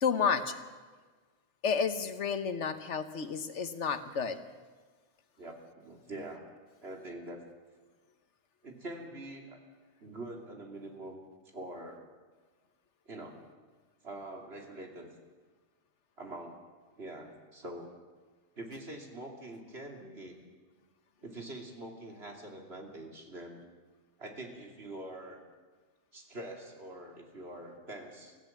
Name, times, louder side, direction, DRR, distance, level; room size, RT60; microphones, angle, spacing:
voice 1, 0.0-0.5 1.6-4.4, left 6 dB, 85° left, 9 dB, 1.5 m, -31 dB
voice 2, 5.4-6.4 6.8-7.4 8.6-9.6 10.0-11.2 11.5-12.0 13.1-13.4 14.0-15.1 16.2-16.6 17.0-17.9 18.6-20.4 21.2-23.6 24.2-25.4 26.1-28.4, right 1 dB, 60° right, 1 dB, 3.1 m, -44 dB
25.0 x 15.5 x 7.2 m, 1.4 s
omnidirectional pair, 1.2 m